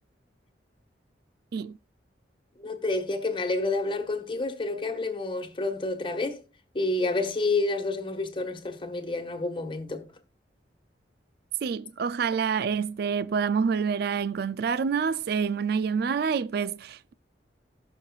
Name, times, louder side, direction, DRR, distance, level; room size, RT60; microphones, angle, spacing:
voice 1, 2.6-6.4 6.7-10.1, left 2 dB, 30° left, 1.5 m, -29 dB
voice 2, 11.6-17.1, right 6 dB, 60° right, 0.4 m, -27 dB
19.5 x 6.5 x 2.4 m
head